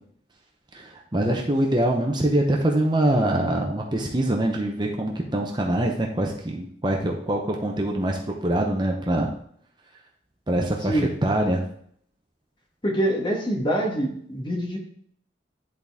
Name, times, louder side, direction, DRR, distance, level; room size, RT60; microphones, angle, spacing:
voice 1, 0.7-9.4 10.5-11.6, right 1 dB, 25° right, 1 dB, 0.7 m, -24 dB
voice 2, 12.8-14.8, right 1 dB, 25° left, 1 dB, 1.3 m, -25 dB
10.5 x 4.0 x 3.5 m, 0.64 s
head